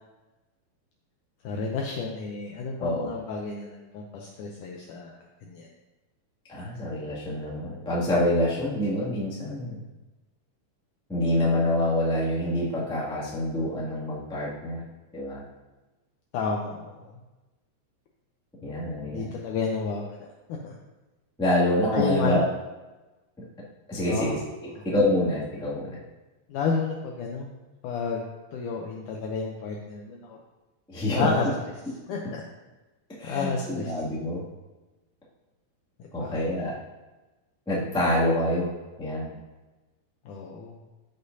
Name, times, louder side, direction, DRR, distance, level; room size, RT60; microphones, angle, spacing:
voice 1, 1.4-5.7 16.3-17.0 19.1-20.2 20.6-20.7 21.9-22.5 24.1-24.3 24.8-24.9 26.5-27.5 27.8-30.4 31.1-31.5 32.1-32.2 33.2-33.9 36.2-36.3 40.3-40.8, left 5 dB, 75° left, 0 dB, 1.9 m, -31 dB
voice 2, 2.8-3.1 6.5-9.8 11.1-14.8 15.1-15.4 18.6-19.3 21.4-22.4 23.9-24.4 24.8-26.0 30.9-31.4 33.2-34.4 36.1-36.7 37.7-38.7 39.0-39.4, left 1 dB, 5° left, -8 dB, 0.9 m, -26 dB
14.0 x 5.3 x 2.7 m, 1.1 s
omnidirectional pair, 4.4 m